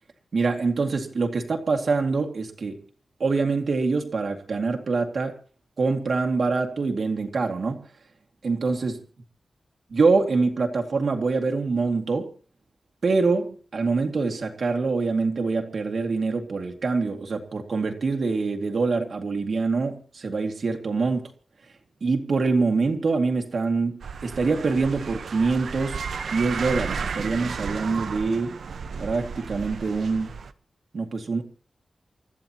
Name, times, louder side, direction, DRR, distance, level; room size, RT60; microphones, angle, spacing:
voice 1, 0.3-2.8 3.2-5.4 5.8-7.8 8.4-9.0 9.9-12.3 13.0-21.3 22.0-26.0 26.3-28.6 29.0-30.3 30.9-31.4, right 4 dB, 55° right, 2.2 m, -25 dB
sound 1, 24.0-30.5, right 5 dB, 80° right, 1.0 m, -33 dB
29.5 x 14.0 x 3.0 m
wide cardioid pair, 145°, 0 cm